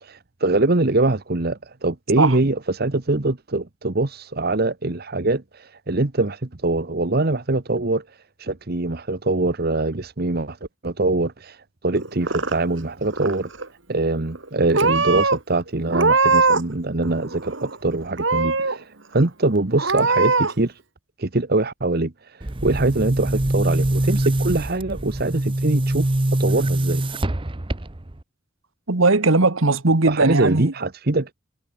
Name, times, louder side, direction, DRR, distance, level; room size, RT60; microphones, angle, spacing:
voice 1, 0.0-8.0 8.4-10.6 10.8-11.6 11.8-13.5 13.9-18.8 19.1-20.7 21.2-22.1 22.6-26.1 26.4-27.0 30.1-31.3, right 2 dB, 50° right, 1.2 m, -23 dB
Purr / Meow, 12.0-12.8 13.1-13.7 14.4-14.5 14.7-15.4 15.9-16.8 17.0-17.8 18.2-18.8 19.2-19.3 19.8-20.5, right 3 dB, 65° right, 3.0 m, -21 dB
Boom, 22.4-28.2, right 1 dB, 25° right, 0.9 m, -23 dB
voice 2, 28.9-30.7, right 3 dB, 85° right, 1.6 m, -18 dB
head